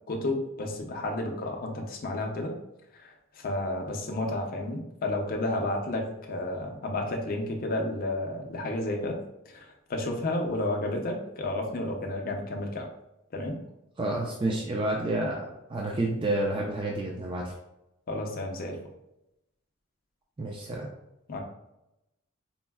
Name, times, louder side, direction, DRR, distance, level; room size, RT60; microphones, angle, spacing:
voice 1, 0.1-2.5 3.0-3.1 3.4-9.2 9.5-12.9 13.3-13.6 18.1-18.8 21.3-21.4, left 1 dB, 45° left, 2 dB, 0.5 m, -31 dB
voice 2, 14.0-15.4 15.7-17.5 20.4-20.9, right 1 dB, 25° right, -1 dB, 0.3 m, -29 dB
4.2 x 2.0 x 2.2 m, 0.87 s
head